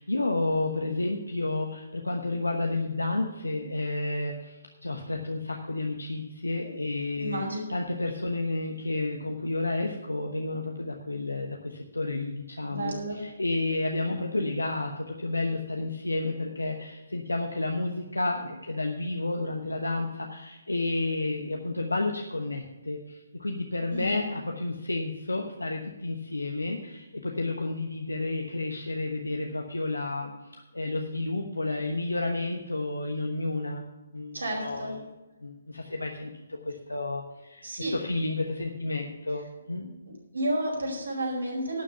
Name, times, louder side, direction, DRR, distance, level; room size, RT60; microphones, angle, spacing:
voice 1, 0.0-7.4 7.7-30.3 30.7-33.9 34.1-35.1 35.4-39.9, left 2 dB, 75° left, 2 dB, 1.1 m, -31 dB
voice 2, 7.2-7.6 12.7-13.2 23.9-24.2 34.3-34.9 37.6-37.9 40.3-41.8, right 1 dB, 70° right, 0 dB, 4.8 m, -31 dB
11.5 x 7.4 x 6.8 m, 1.1 s
figure-of-eight pair, 135°, 0 cm